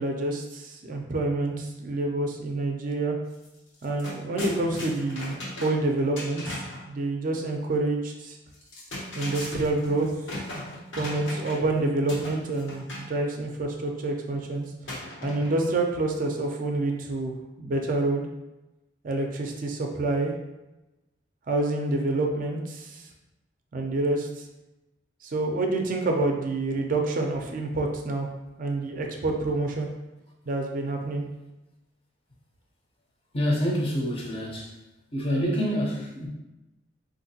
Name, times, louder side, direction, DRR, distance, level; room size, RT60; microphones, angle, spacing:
voice 1, 0.0-3.2 3.8-8.4 9.1-10.1 11.0-14.6 15.2-18.3 19.0-20.3 21.5-23.1 23.7-24.4 25.2-28.3 28.6-29.9 30.5-31.2, right 2 dB, 45° right, 2 dB, 0.4 m, -27 dB
sound 1, 3.3-3.5 3.7-6.9 8.5-11.7 12.1-13.1 14.9-15.8, left 1 dB, 80° left, 0.8 m, -37 dB
voice 2, 33.3-34.8 35.1-36.3, equal, 30° left, -2 dB, 0.6 m, -27 dB
3.5 x 2.5 x 2.7 m, 1.0 s
head